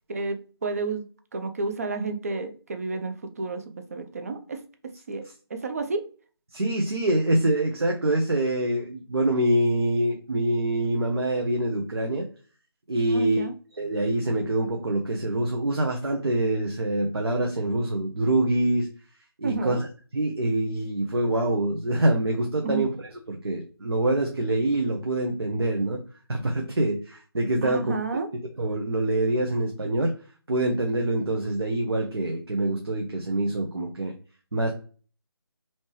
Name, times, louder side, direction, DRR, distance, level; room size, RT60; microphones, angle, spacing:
voice 1, 0.1-1.0 1.3-3.6 3.9-4.6 5.1-5.2 5.5-6.0 13.1-13.5 19.4-19.8 22.6-22.9 27.6-28.3, right 3 dB, 35° right, 7 dB, 0.4 m, -30 dB
voice 2, 6.5-12.3 12.9-13.5 13.7-18.9 19.4-19.9 20.1-22.9 23.3-26.0 26.3-27.9 28.6-30.2 30.5-34.1 34.5-34.7, right 1 dB, 75° right, 1 dB, 0.7 m, -25 dB
3.2 x 2.8 x 3.0 m, 0.40 s
figure-of-eight pair, 155°, 13 cm